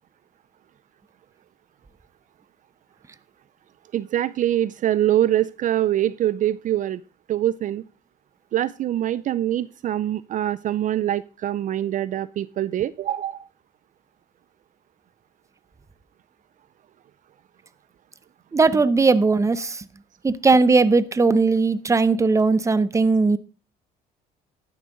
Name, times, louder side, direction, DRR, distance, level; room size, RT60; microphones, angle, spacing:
voice 1, 3.9-7.0 7.3-7.8 8.5-13.5, right 12 dB, 50° right, 18 dB, 0.4 m, -24 dB
voice 2, 18.5-19.8 20.2-23.4, right 4 dB, 20° right, 15 dB, 0.8 m, -18 dB
12.0 x 10.0 x 3.9 m, 0.33 s
cardioid pair, 110°, 17 cm